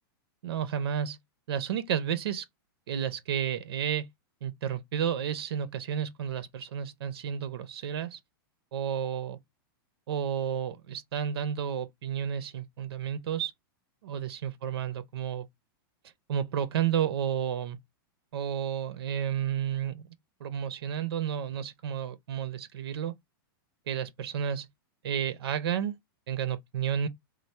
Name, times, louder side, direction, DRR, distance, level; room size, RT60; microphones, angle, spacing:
voice 1, 0.4-1.2 1.5-2.5 2.9-4.1 4.4-8.2 8.7-9.4 10.1-13.5 14.0-15.5 16.3-17.8 18.3-20.0 20.4-23.1 23.9-24.7 25.0-26.0 26.3-27.1, right 9 dB, 90° right, 0.6 m, -31 dB
3.2 x 2.0 x 4.2 m
supercardioid pair, 160°, 13 cm